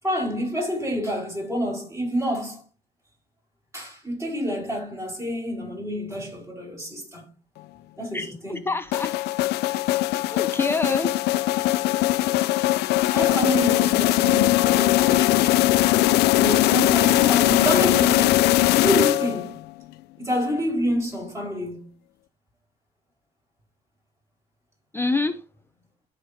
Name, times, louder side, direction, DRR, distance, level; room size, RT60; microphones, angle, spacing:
voice 1, 0.0-2.6 3.7-7.2 8.0-8.6 10.3-10.6 13.1-15.8 16.3-19.6 20.2-21.9, equal, 15° right, 4.7 m, -28 dB
voice 2, 8.1-9.1 10.3-11.1 24.9-25.4, left 3 dB, 15° left, 0.5 m, -26 dB
sound 1, 8.9-19.6, left 16 dB, 75° left, 0.4 m, -20 dB
14.0 x 5.1 x 2.7 m
cardioid pair, 110°, 17 cm